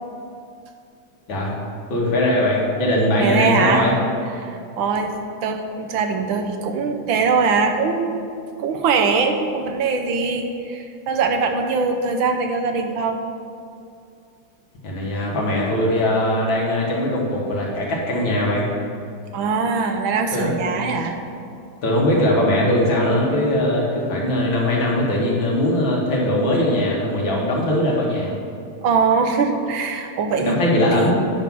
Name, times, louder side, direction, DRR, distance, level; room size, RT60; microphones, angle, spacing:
voice 1, 1.9-3.9 14.8-18.7 20.3-20.5 21.8-28.3 30.4-31.1, left 1 dB, 75° left, -3 dB, 2.6 m, -20 dB
voice 2, 3.2-3.9 4.4-5.1 5.4-8.1 8.6-13.2 19.3-21.2 28.8-30.6 30.9-31.1, right 4 dB, 80° right, 4 dB, 1.6 m, -22 dB
9.5 x 5.5 x 6.1 m, 2.5 s
omnidirectional pair, 2.1 m